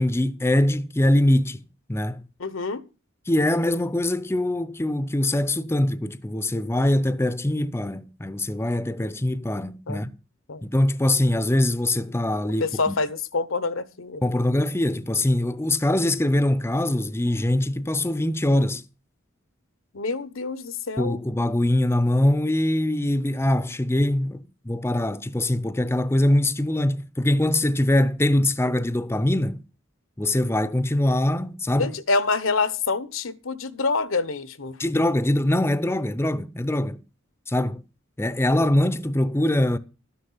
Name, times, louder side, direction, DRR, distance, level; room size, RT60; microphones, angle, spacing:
voice 1, 0.0-1.6 1.9-2.2 3.3-10.1 10.6-12.9 14.2-18.8 21.0-29.6 30.2-31.9 34.8-37.0 37.5-37.8 38.2-39.8, left 1 dB, 10° left, 0.6 m, -23 dB
voice 2, 2.4-2.8 9.9-10.0 10.5-10.6 12.6-14.2 19.9-21.2 31.8-34.8, left 4 dB, 80° left, 1.0 m, -26 dB
12.5 x 9.9 x 5.6 m
head